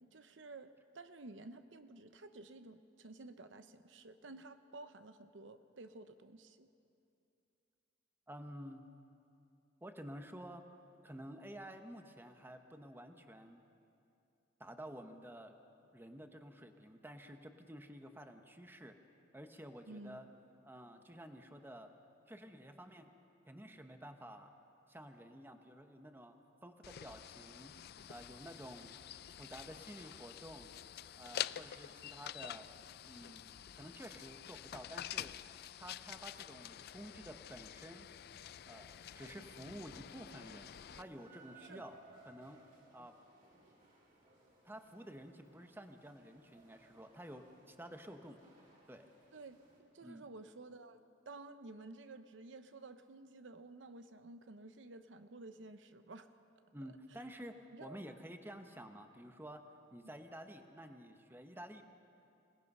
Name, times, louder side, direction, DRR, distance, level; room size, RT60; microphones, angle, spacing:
voice 1, 0.0-6.7 19.9-20.2 41.6-41.8 49.3-51.0 51.3-56.3 57.7-58.0, right 2 dB, 75° right, 9 dB, 0.8 m, -53 dB
voice 2, 8.3-8.8 9.8-10.6 11.0-13.6 14.6-15.5 15.9-19.0 19.3-20.3 20.6-21.9 22.3-23.2 23.5-24.5 24.9-26.3 26.6-27.7 28.1-28.9 29.4-30.7 31.2-32.7 33.1-35.3 35.8-38.1 38.6-42.0 42.2-42.6 42.9-43.1 44.6-48.4 48.9-49.1 50.0-50.3 56.7-61.8, equal, 10° right, 6 dB, 1.0 m, -51 dB
sound 1, 26.8-41.0, left 10 dB, 55° left, 0.4 m, -48 dB
sound 2, 39.1-49.8, right 2 dB, 50° right, 4.4 m, -64 dB
26.5 x 18.0 x 5.5 m, 2.7 s
head